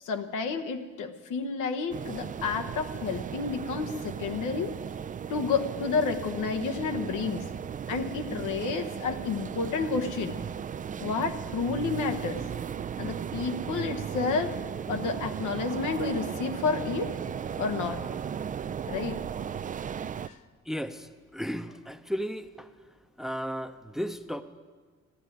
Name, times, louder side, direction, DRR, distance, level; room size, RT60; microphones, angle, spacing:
voice 1, 0.0-4.7 5.3-7.4 7.9-10.4 11.0-12.4 13.0-14.6 14.9-17.1 17.6-18.0 18.9-19.2 20.3-20.4, left 5 dB, 85° left, 7 dB, 1.2 m, -30 dB
sound 1, 1.9-20.3, right 8 dB, 30° right, 0.3 m, -36 dB
voice 2, 20.7-21.1 21.3-22.7 23.2-24.4, equal, ahead, 10 dB, 0.7 m, -34 dB
14.5 x 10.0 x 9.3 m, 1.5 s
cardioid pair, 90°, 30 cm